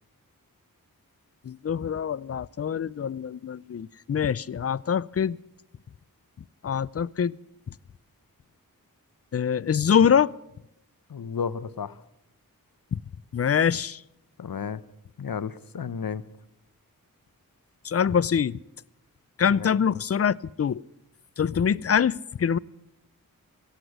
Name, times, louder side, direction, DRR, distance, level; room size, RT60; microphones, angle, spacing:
voice 1, 1.5-5.4 6.6-7.3 9.3-10.3 12.9-13.0 13.3-14.0 17.8-18.6 19.4-20.8 21.4-22.6, left 7 dB, 45° left, 0.4 m, -24 dB
voice 2, 11.1-12.0 14.4-14.8 15.2-16.2 19.5-19.8, left 6 dB, 70° left, 0.8 m, -33 dB
16.5 x 8.1 x 9.4 m
wide cardioid pair, 55°, 36 cm